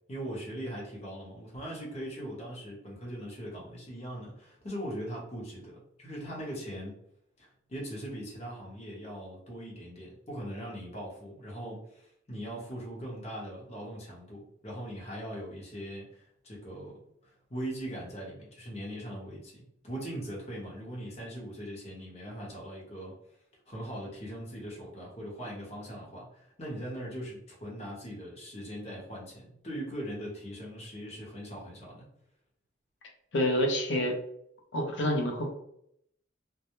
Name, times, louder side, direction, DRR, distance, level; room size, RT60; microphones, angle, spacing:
voice 1, 0.1-6.9 7.4-23.1 23.7-32.0, equal, 35° left, -3 dB, 0.8 m, -40 dB
voice 2, 33.3-34.2 34.7-35.5, equal, 70° left, 3 dB, 0.5 m, -27 dB
2.2 x 2.0 x 2.9 m, 0.73 s
head